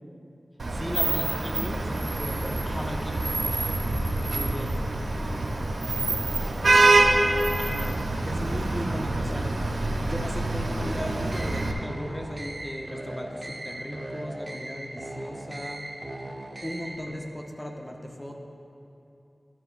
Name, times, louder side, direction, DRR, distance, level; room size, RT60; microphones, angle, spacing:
Vehicle horn car horn honking / Traffic noise roadway noise, 0.6-11.7, right 2 dB, 85° right, 0.7 m, -25 dB
voice 1, 0.7-1.9 2.6-3.4 4.2-4.7 7.6-9.5 10.0-15.9 16.6-18.4, equal, 10° left, 1 dB, 0.7 m, -37 dB
voice 2, 1.3-2.6 5.1-5.3 6.1-7.0, right 1 dB, 10° right, -5 dB, 2.1 m, -40 dB
sound 1, 10.8-17.1, right 1 dB, 40° right, 0.9 m, -38 dB
12.5 x 7.9 x 2.4 m, 2.7 s
wide cardioid pair, 55°, 0 cm